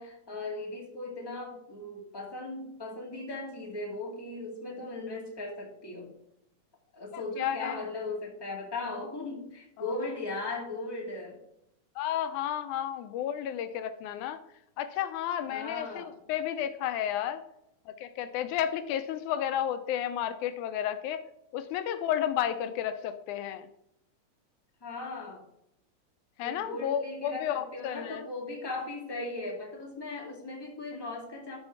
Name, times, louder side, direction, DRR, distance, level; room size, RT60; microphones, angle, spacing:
voice 1, 0.0-6.1 6.9-11.4 15.5-16.2 24.8-25.4 26.4-31.6, left 2 dB, 10° left, -2 dB, 1.7 m, -38 dB
voice 2, 7.1-7.8 9.8-9.9 12.0-14.4 14.8-17.4 17.9-21.2 21.5-23.7 26.4-28.2, left 10 dB, 85° left, 10 dB, 2.1 m, -32 dB
12.0 x 4.5 x 5.8 m, 0.77 s
omnidirectional pair, 3.5 m